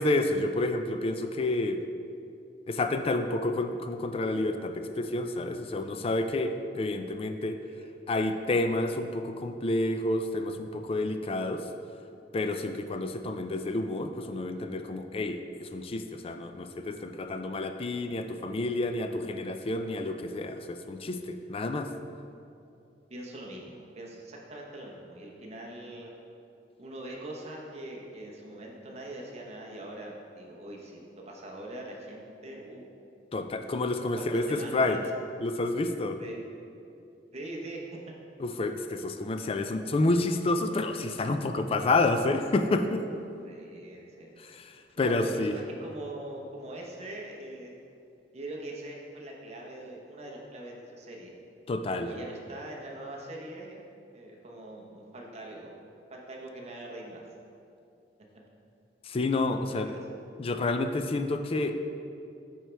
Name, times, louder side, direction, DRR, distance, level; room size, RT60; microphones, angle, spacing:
voice 1, 0.0-1.8 2.7-7.6 8.1-11.6 12.3-21.9 33.3-35.0 35.4-36.2 38.4-43.0 44.4-45.5 51.7-52.1 59.0-59.9 60.4-61.7, left 2 dB, 35° left, 7 dB, 0.4 m, -29 dB
voice 2, 23.1-26.1 26.8-32.8 34.2-35.0 36.2-36.4 37.3-37.8 43.4-44.3 45.0-47.7 48.3-51.3 52.0-53.8 54.1-55.7 56.1-57.2 59.7-60.0, right 1 dB, 40° right, -1 dB, 0.9 m, -42 dB
9.0 x 4.5 x 3.4 m, 2.6 s
head